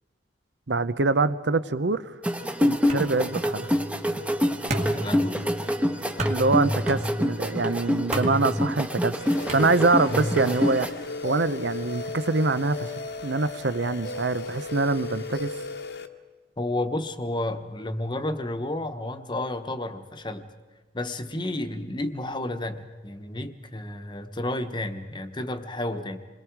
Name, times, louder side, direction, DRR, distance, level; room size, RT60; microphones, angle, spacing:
voice 1, 0.7-2.1 2.6-3.7 6.3-9.2 9.5-10.9 11.2-12.9 13.2-15.5, right 3 dB, 70° right, 14 dB, 0.8 m, -24 dB
sound 1, 2.2-10.9, equal, 5° right, 1.0 m, -26 dB
sound 2, 2.9-10.3, right 1 dB, 40° right, 2.0 m, -33 dB
voice 2, 4.9-5.5 10.1-10.4 16.6-20.4 20.9-26.2, left 1 dB, 25° left, 8 dB, 1.1 m, -31 dB
sound 3, 9.2-16.1, left 3 dB, 65° left, 1.2 m, -35 dB
28.0 x 22.0 x 4.7 m, 1.4 s
head